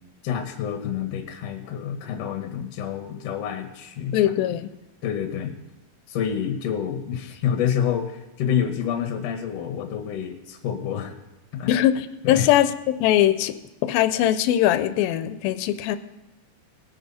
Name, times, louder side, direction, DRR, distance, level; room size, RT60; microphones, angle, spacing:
voice 1, 0.2-4.3 5.0-5.5 6.1-11.1 11.5-11.7 12.2-12.5, left 8 dB, 60° left, 5 dB, 1.9 m, -28 dB
voice 2, 4.1-4.7 11.7-13.5 13.8-16.0, left 12 dB, 90° left, 11 dB, 2.4 m, -21 dB
19.5 x 9.5 x 4.2 m, 1.0 s
omnidirectional pair, 4.1 m